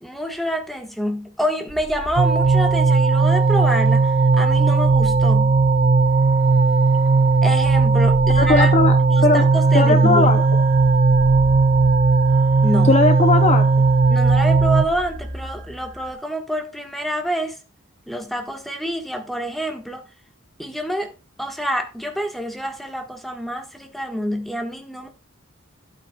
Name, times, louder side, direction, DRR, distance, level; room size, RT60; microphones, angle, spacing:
voice 1, 0.0-5.5 7.4-8.7 9.1-10.3 12.6-12.9 14.1-17.6 18.1-20.0 20.6-21.1 21.4-25.1, equal, ahead, 1.3 m, -27 dB
sound 1, 1.7-16.1, equal, 85° right, 2.1 m, -37 dB
sound 2, 2.2-14.9, right 4 dB, 35° right, 0.6 m, -16 dB
voice 2, 8.4-9.5 9.7-10.5 12.8-13.7, left 3 dB, 30° left, 0.5 m, -18 dB
12.5 x 8.3 x 2.2 m
head